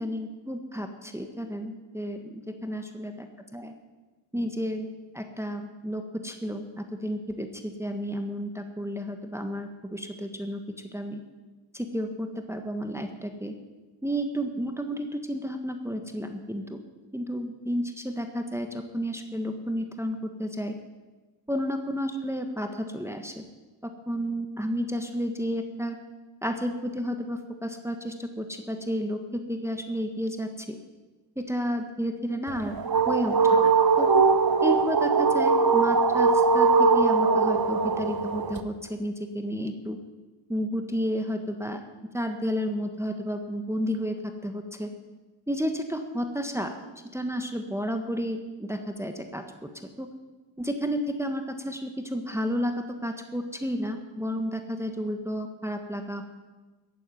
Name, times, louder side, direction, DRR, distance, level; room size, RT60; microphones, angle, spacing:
voice 1, 0.0-3.3 3.5-3.7 4.3-4.9 5.1-10.6 10.9-11.2 11.7-13.5 14.0-16.8 17.1-20.8 21.5-23.4 23.8-26.0 26.4-30.8 31.4-32.8 33.1-33.7 34.0-34.1 34.6-40.0 40.5-41.8 42.1-44.2 44.4-44.9 45.5-46.7 47.1-49.7 50.0-50.1 50.6-52.7 53.0-56.2, equal, 5° right, 5 dB, 1.5 m, -31 dB
sound 1, 32.5-38.6, right 4 dB, 50° right, 1.2 m, -21 dB
15.0 x 9.5 x 9.3 m, 1.2 s
wide cardioid pair, 85°, 47 cm